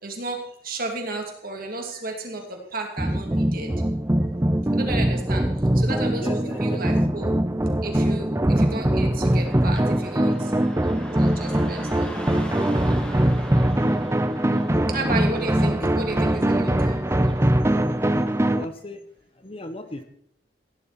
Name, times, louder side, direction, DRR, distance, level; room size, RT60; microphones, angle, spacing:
voice 1, 0.0-3.7 4.7-5.5 5.7-7.3 7.8-10.5 11.1-12.2 14.7-17.0, right 2 dB, 50° right, 2 dB, 2.7 m, -33 dB
sound 1, 3.0-18.7, right 1 dB, 15° right, 0.6 m, -22 dB
voice 2, 6.2-6.9 14.5-14.7 15.6-15.9 18.1-19.0 19.4-20.0, left 1 dB, 30° left, 8 dB, 1.0 m, -36 dB
Car passing by / Traffic noise roadway noise, 9.2-18.3, equal, 5° left, 2.2 m, -42 dB
16.5 x 11.0 x 4.3 m, 0.69 s
head